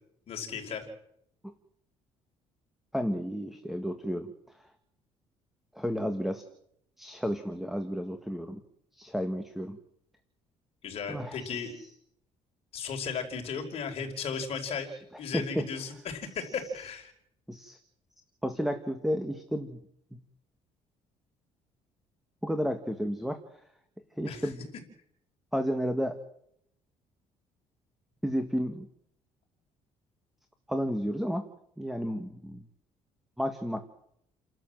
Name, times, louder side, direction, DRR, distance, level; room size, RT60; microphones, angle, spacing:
voice 1, 0.3-0.9 10.8-11.7 12.7-14.9 15.2-17.1 24.3-24.5, left 6 dB, 55° left, 3 dB, 4.8 m, -35 dB
voice 2, 2.9-4.3 5.7-6.4 7.0-8.6 9.0-9.8 11.1-11.5 15.3-15.7 17.5-17.8 18.4-19.8 22.4-23.4 24.2-24.7 25.5-26.2 28.2-28.9 30.7-31.5 31.8-32.6 33.4-33.9, equal, ahead, 8 dB, 1.6 m, -32 dB
30.0 x 12.5 x 7.6 m, 0.75 s
cardioid pair, 115°, 12 cm